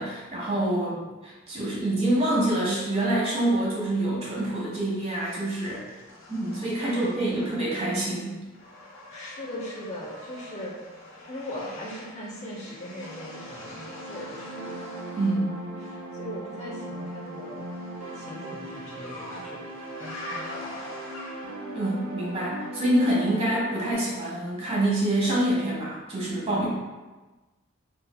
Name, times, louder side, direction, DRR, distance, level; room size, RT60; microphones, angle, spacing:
voice 1, 0.0-0.9 1.2-5.8 6.3-8.4 15.1-15.5 21.7-26.7, right 1 dB, 30° right, -6 dB, 1.1 m, -26 dB
voice 2, 0.7-1.1 6.8-7.5 9.1-10.7 11.3-14.5 15.8-17.6 18.1-19.6 20.0-20.9, equal, 35° left, -5 dB, 0.5 m, -39 dB
sound 1, 4.8-7.8 8.1-15.4 17.0-21.7, left 2 dB, 80° left, 0.9 m, -45 dB
sound 2, 12.3-23.9, right 1 dB, 80° right, 0.7 m, -39 dB
4.1 x 2.7 x 2.2 m, 1.2 s
head